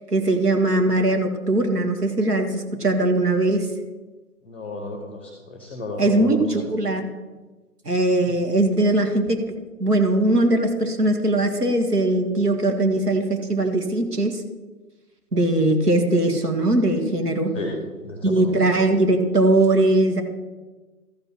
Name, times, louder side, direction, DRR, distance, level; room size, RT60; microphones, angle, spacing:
voice 1, 0.1-3.7 6.0-7.1 7.9-9.4 9.8-14.4 15.3-17.5 18.2-20.2, right 2 dB, 75° right, 4 dB, 2.0 m, -20 dB
voice 2, 4.5-6.3 17.5-17.7 18.0-18.5, left 2 dB, 10° left, 1 dB, 0.8 m, -33 dB
13.5 x 5.5 x 6.0 m, 1.2 s
figure-of-eight pair, 150°, 47 cm